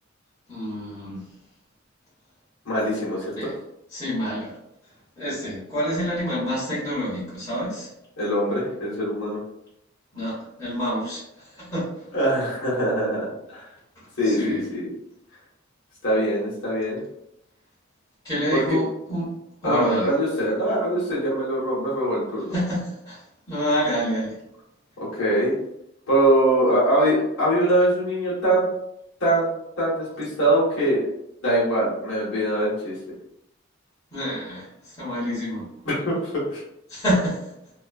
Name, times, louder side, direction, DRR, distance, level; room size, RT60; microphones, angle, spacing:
voice 1, 0.5-1.2 3.3-3.5 3.9-4.5 5.2-7.9 10.1-11.2 11.6-11.9 14.2-14.6 18.2-19.3 19.6-20.1 22.5-23.2 23.5-24.4 34.1-34.7 35.0-35.7 36.9-37.4, equal, 20° left, -10 dB, 1.2 m, -27 dB
voice 2, 2.6-3.5 8.2-9.4 12.1-13.7 14.2-14.9 16.0-17.0 18.5-18.8 19.6-22.5 25.0-25.5 26.1-28.6 29.2-29.5 29.8-31.0 31.4-32.9 35.8-36.6, right 1 dB, 65° left, -8 dB, 1.1 m, -23 dB
2.9 x 2.4 x 2.3 m, 0.81 s
head